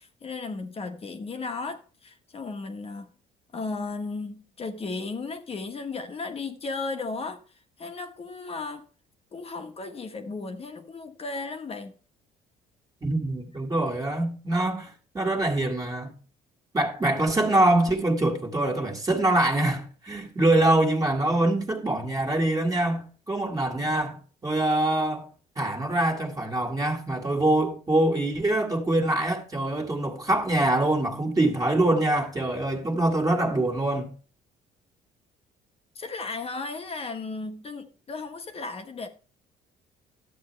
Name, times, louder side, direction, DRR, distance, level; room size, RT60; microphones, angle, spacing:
voice 1, 0.0-3.1 3.5-7.4 7.8-8.9 9.3-11.9 35.9-39.1, left 3 dB, 35° left, 1.2 m, -35 dB
voice 2, 13.0-16.1 16.7-25.3 25.6-34.1, right 1 dB, 20° right, 2.0 m, -24 dB
12.0 x 8.1 x 3.3 m
cardioid pair, 110°, 17 cm